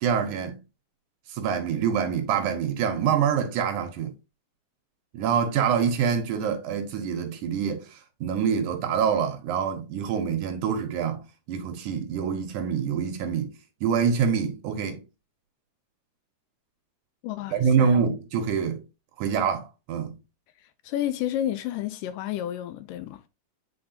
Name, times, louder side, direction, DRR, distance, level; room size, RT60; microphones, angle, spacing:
voice 1, 0.0-0.6 1.3-4.1 5.1-13.5 13.8-15.0 17.5-18.8 19.2-20.2, right 7 dB, 75° right, 2.1 m, -26 dB
voice 2, 17.2-18.0 20.8-23.2, left 12 dB, 80° left, 2.1 m, -31 dB
8.6 x 4.3 x 2.6 m
omnidirectional pair, 4.0 m